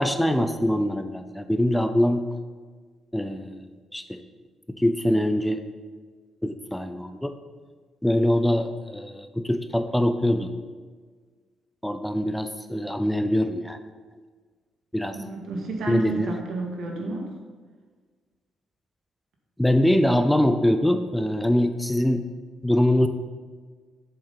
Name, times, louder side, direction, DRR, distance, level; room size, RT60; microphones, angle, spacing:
voice 1, 0.0-2.2 3.1-4.2 4.8-5.6 6.4-7.3 8.0-10.5 11.8-13.8 14.9-15.2 15.9-16.3 19.6-22.2 22.6-23.1, left 1 dB, 5° left, 8 dB, 0.5 m, -23 dB
voice 2, 15.1-17.3, right 3 dB, 75° right, 0 dB, 1.9 m, -30 dB
7.7 x 7.3 x 4.1 m, 1.5 s
cardioid pair, 90°, 0 cm